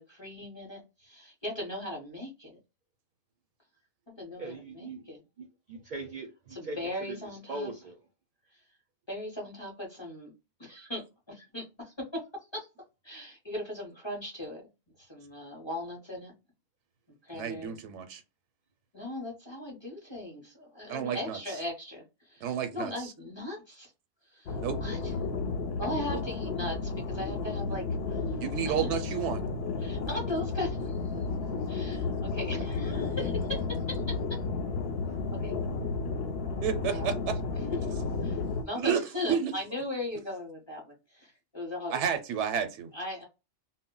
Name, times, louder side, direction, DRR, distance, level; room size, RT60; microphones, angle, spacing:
voice 1, 0.0-2.5 4.1-5.2 6.5-7.7 8.5-8.6 9.1-10.3 10.6-12.7 13.0-14.6 15.0-16.3 17.1-17.7 18.9-23.9 24.3-25.1 25.8-28.4 28.7-28.9 29.8-31.0 31.7-34.4 35.3-35.6 36.9-37.2 38.2-42.0 42.9-43.2, left 1 dB, 30° left, 0.6 m, -38 dB
voice 2, 4.4-5.0 5.4-6.8 7.1-7.2 7.5-8.0, right 2 dB, 55° right, 0.5 m, -40 dB
voice 3, 17.3-18.2 20.9-21.4 22.4-23.1 24.6-24.8 26.1-26.2 28.4-29.4 36.6-37.4 38.8-39.0 39.3-39.5 41.9-42.9, right 8 dB, 80° right, 0.9 m, -31 dB
sound 1, 24.5-38.6, left 4 dB, 65° left, 0.7 m, -32 dB
2.1 x 2.0 x 3.7 m
omnidirectional pair, 1.2 m